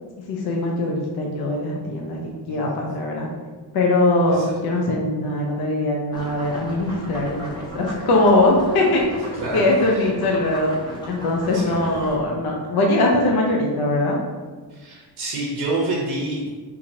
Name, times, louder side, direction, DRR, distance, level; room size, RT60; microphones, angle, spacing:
voice 1, 0.3-3.3 3.7-14.2, left 2 dB, 60° left, -1 dB, 0.6 m, -21 dB
sound 1, 6.1-12.2, equal, 10° left, 0.5 m, -36 dB
voice 2, 9.4-10.1 11.5-11.8 14.7-16.5, right 2 dB, 75° right, -3 dB, 0.8 m, -28 dB
4.7 x 2.6 x 2.7 m, 1.4 s
wide cardioid pair, 180°, 43 cm